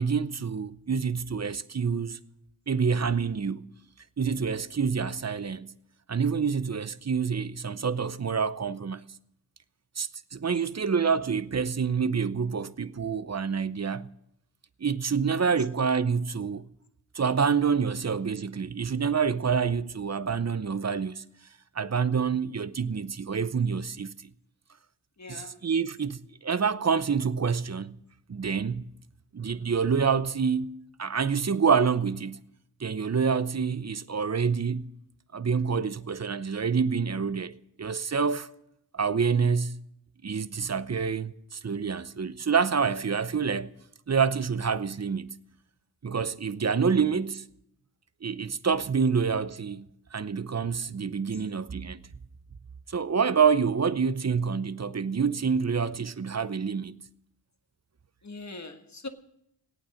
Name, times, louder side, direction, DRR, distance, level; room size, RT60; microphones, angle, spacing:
voice 1, 0.0-2.2 2.7-3.7 4.2-5.7 6.1-9.1 10.0-14.1 14.8-16.7 17.1-21.2 21.8-24.1 25.6-28.0 28.3-28.8 29.3-32.4 32.8-34.9 35.3-38.5 38.9-39.8 40.2-43.7 44.1-45.4 46.0-47.5 48.2-52.0 52.9-57.0, right 6 dB, 40° right, 0.7 m, -27 dB
voice 2, 15.4-15.8 25.2-25.6 51.3-51.4 58.2-59.1, left 3 dB, 40° left, 1.5 m, -42 dB
18.5 x 8.8 x 6.4 m
cardioid pair, 45°, 43 cm